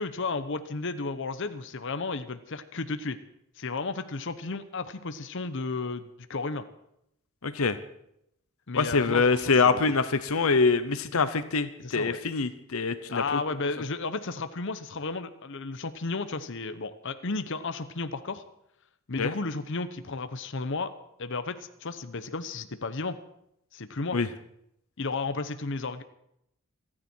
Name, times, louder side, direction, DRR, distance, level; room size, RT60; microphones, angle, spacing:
voice 1, 0.0-3.2 3.6-6.6 8.7-9.3 9.6-9.9 11.8-12.2 13.1-18.4 19.1-20.9 21.2-23.2 23.7-24.2 25.0-26.0, left 3 dB, 60° left, 10 dB, 0.9 m, -33 dB
voice 2, 7.4-7.8 8.7-13.4 19.2-19.3 24.1-24.3, left 4 dB, 90° left, 12 dB, 0.9 m, -25 dB
28.0 x 10.0 x 4.6 m, 0.77 s
head